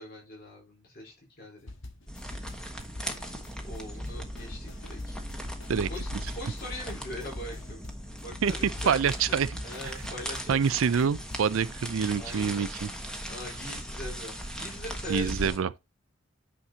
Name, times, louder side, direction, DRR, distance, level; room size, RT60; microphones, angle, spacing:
voice 1, 0.0-1.7 3.6-5.2 5.9-7.9 8.2-9.4 9.6-10.8 12.2-12.7 13.3-15.6, left 1 dB, 45° left, 4.3 m, -42 dB
sound 1, 1.7-11.5, left 2 dB, 65° left, 1.6 m, -46 dB
sound 2, 2.1-15.6, equal, 5° left, 1.2 m, -38 dB
voice 2, 8.4-9.6 9.8-9.9 10.5-12.9 15.1-15.7, right 7 dB, 75° right, 0.4 m, -26 dB
9.8 x 5.8 x 2.8 m
head